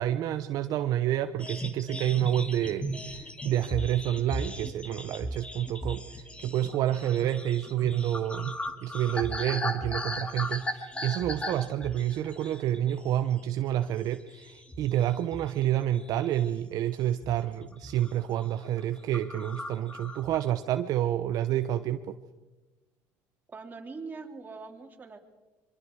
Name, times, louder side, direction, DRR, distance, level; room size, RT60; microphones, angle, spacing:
voice 1, 0.0-8.5 8.8-22.2, right 12 dB, 60° right, 9 dB, 0.8 m, -29 dB
sound 1, 1.4-13.1 13.4-13.7 14.1-15.6 15.9-16.7 17.2-17.5 17.7-18.1 18.4-18.5 18.8-18.9 19.1-20.5, equal, 15° left, 2.1 m, -37 dB
voice 2, 23.5-25.2, right 4 dB, 25° right, 2 dB, 3.4 m, -42 dB
25.5 x 23.5 x 4.8 m, 1.1 s
supercardioid pair, 100°, 7 cm